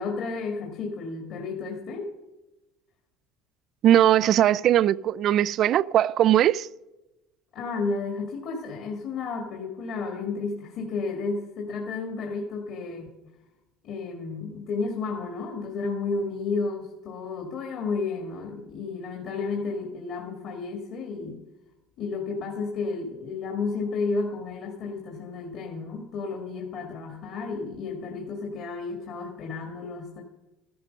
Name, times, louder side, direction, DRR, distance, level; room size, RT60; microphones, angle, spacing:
voice 1, 0.0-2.1 7.5-13.1 13.8-21.4 22.0-30.2, left 4 dB, 55° left, 2.1 m, -32 dB
voice 2, 3.8-6.7, right 11 dB, 55° right, 0.4 m, -20 dB
14.0 x 12.5 x 5.4 m
supercardioid pair, 105°, 0 cm